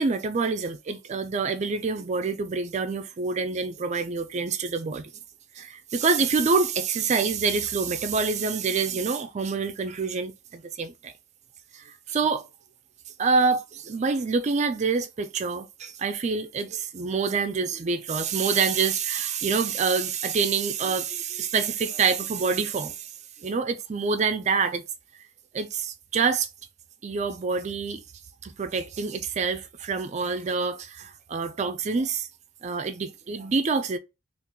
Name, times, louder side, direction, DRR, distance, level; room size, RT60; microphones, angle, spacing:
voice 1, 0.0-5.1 5.6-11.1 11.7-12.5 13.2-23.1 23.4-24.8 25.5-26.5 27.0-28.0 28.4-32.3 32.6-34.0, right 5 dB, 35° right, 0.4 m, -26 dB
2.9 x 2.5 x 3.6 m
head